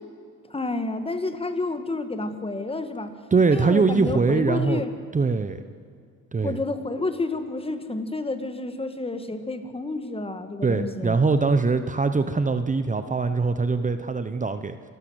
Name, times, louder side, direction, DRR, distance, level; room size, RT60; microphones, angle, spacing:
voice 1, 0.5-3.1 3.5-4.9 6.4-11.1, left 2 dB, 20° left, 9 dB, 1.8 m, -30 dB
voice 2, 3.3-4.8 5.1-5.6 6.3-6.6 10.6-14.8, right 4 dB, 25° right, 10 dB, 0.9 m, -22 dB
27.0 x 12.5 x 8.0 m, 2.2 s
cardioid pair, 90°, 30 cm